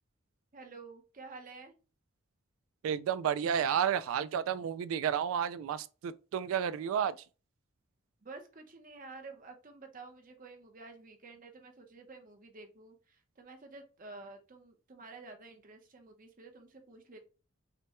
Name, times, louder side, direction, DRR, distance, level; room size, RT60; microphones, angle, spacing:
voice 1, 0.5-1.7 8.2-17.2, right 3 dB, 40° right, 0.8 m, -50 dB
voice 2, 2.8-7.1, right 8 dB, 85° right, 0.3 m, -31 dB
6.0 x 2.2 x 2.9 m
head